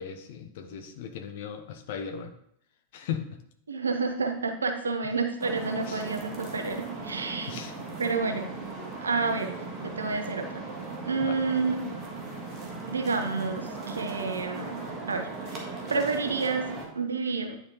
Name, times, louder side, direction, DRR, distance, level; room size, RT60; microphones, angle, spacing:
voice 1, 0.0-2.3 2.9-3.2 5.9-6.1 7.5-7.7 11.2-11.4, left 8 dB, 55° left, 7 dB, 0.8 m, -37 dB
voice 2, 3.7-7.5 8.0-8.5 9.0-10.6 11.0-11.8 12.9-17.6, right 4 dB, 75° right, 6 dB, 0.6 m, -30 dB
sound 1, 5.4-16.9, right 3 dB, 25° right, 1.5 m, -38 dB
9.5 x 3.9 x 3.0 m, 0.71 s
figure-of-eight pair, 90°, 0 cm